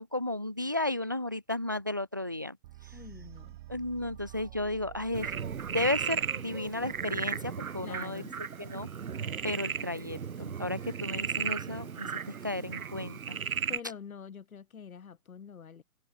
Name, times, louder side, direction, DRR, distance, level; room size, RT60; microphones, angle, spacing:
voice 1, 0.0-2.6 3.7-5.3 5.7-8.2 8.6-8.9 9.4-13.4, left 2 dB, 15° right, 0.3 m, -34 dB
sound 1, 2.6-7.5, right 16 dB, 35° right, 4.0 m, -50 dB
voice 2, 2.9-3.6 7.8-8.4 13.7-15.8, left 7 dB, 80° left, 3.1 m, -46 dB
Frog, 5.1-13.8, right 7 dB, 80° right, 2.5 m, -35 dB
hypercardioid pair, 150°, 42 cm